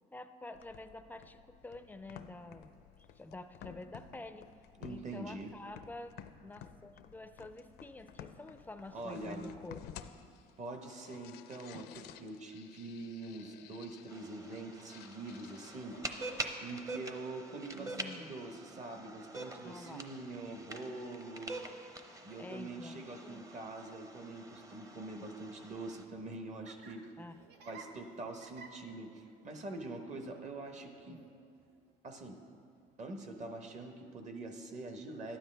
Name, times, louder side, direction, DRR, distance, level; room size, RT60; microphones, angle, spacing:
voice 1, 0.1-2.8 3.2-4.5 4.9-10.0 17.7-18.3 19.6-20.1 22.4-23.5 27.2-27.4 31.1-31.2, left 2 dB, 10° left, 10 dB, 0.4 m, -48 dB
sound 1, 0.5-16.5, left 9 dB, 75° left, 0.5 m, -54 dB
voice 2, 4.8-5.5 8.9-9.4 10.6-16.0 16.6-21.5 22.2-27.0 27.7-31.2 32.0-32.4 33.0-35.4, right 2 dB, 45° right, 5 dB, 1.1 m, -44 dB
sound 2, 14.1-26.0, right 2 dB, 20° right, 0.7 m, -46 dB
Laughter, 26.1-33.6, right 4 dB, 80° right, 0.8 m, -58 dB
12.5 x 10.0 x 3.4 m, 2.3 s
cardioid pair, 110°, 17 cm